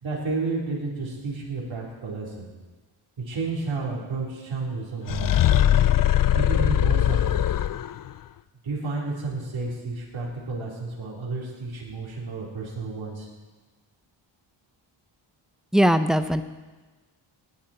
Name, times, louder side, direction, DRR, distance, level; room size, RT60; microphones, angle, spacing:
voice 1, 0.0-2.5 3.3-5.4 6.3-7.6 8.6-13.3, right 3 dB, 70° right, -4 dB, 4.1 m, -31 dB
sound 1, 5.1-8.1, left 11 dB, 45° left, 0.4 m, -20 dB
voice 2, 15.7-16.4, equal, ahead, 10 dB, 0.7 m, -20 dB
18.0 x 11.0 x 4.4 m, 1.3 s
cardioid pair, 100°, 48 cm